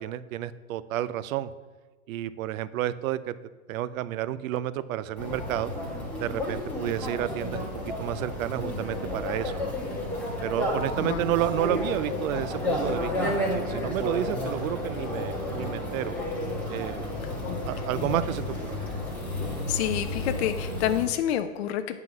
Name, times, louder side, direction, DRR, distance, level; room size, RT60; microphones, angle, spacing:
voice 1, 0.0-1.5 2.1-3.3 3.7-5.7 6.2-7.7 8.0-9.7 10.4-16.1 16.7-17.1 17.6-18.8, right 13 dB, 65° right, 15 dB, 0.5 m, -31 dB
sound 1, 5.2-21.1, left 1 dB, 5° left, 1.4 m, -31 dB
voice 2, 19.7-22.0, left 11 dB, 50° left, 8 dB, 0.4 m, -28 dB
7.6 x 3.8 x 6.0 m, 1.3 s
hypercardioid pair, 135°, 44 cm